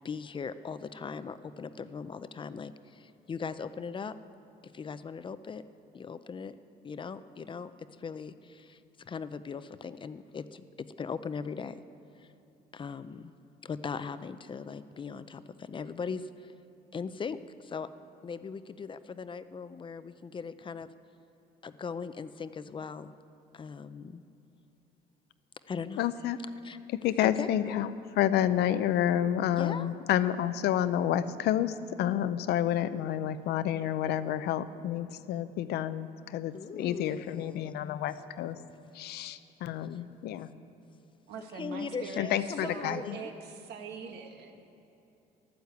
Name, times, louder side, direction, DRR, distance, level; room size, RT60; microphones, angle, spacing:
voice 1, 0.0-4.1 4.7-5.6 5.9-6.6 6.8-7.7 8.0-11.8 12.2-12.3 12.7-13.3 13.6-16.5 16.9-17.9 18.2-20.9 21.6-23.1 23.5-24.2 25.7-26.0 26.6-26.8 27.2-27.7 29.6-29.9 36.5-37.7 39.9-40.0 41.4-43.3, left 5 dB, 30° left, 13 dB, 0.6 m, -39 dB
voice 2, 26.0-26.4 27.0-27.9 28.2-38.6 38.9-40.5 42.2-43.2, left 11 dB, 75° left, 12 dB, 0.7 m, -29 dB
voice 3, 41.3-44.6, right 5 dB, 80° right, 4 dB, 1.6 m, -42 dB
13.0 x 12.0 x 8.2 m, 2.8 s
cardioid pair, 110°, 17 cm